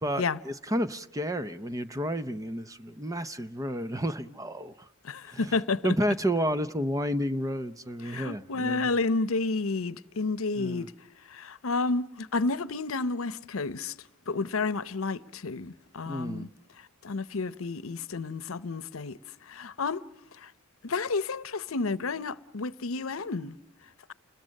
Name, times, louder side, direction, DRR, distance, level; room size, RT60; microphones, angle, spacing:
voice 1, 0.0-4.9 5.3-5.5 5.8-8.9 10.6-10.9 16.1-16.5, equal, 15° right, 0.8 m, -31 dB
voice 2, 5.0-5.9 8.0-10.9 11.3-13.9 14.3-16.5 17.0-19.2 19.5-20.0 20.4-20.5 20.8-23.6, left 3 dB, 85° left, 0.8 m, -31 dB
29.5 x 21.0 x 6.5 m
head